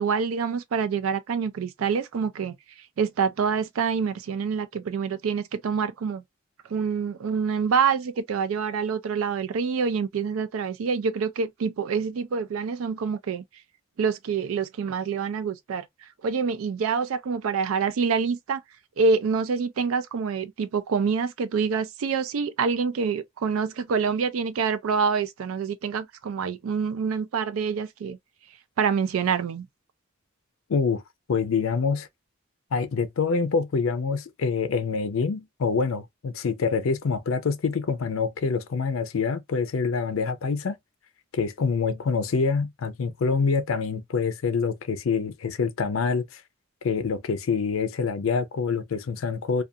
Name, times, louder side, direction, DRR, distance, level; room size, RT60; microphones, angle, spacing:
voice 1, 0.0-2.5 3.0-6.2 6.7-13.4 14.0-15.9 16.2-18.6 19.0-28.2 28.8-29.7, right 5 dB, 90° right, 0.4 m, -26 dB
voice 2, 30.7-31.0 31.3-32.1 32.7-40.8 41.3-46.4 46.8-49.6, left 5 dB, 80° left, 0.5 m, -26 dB
2.4 x 2.3 x 2.6 m
head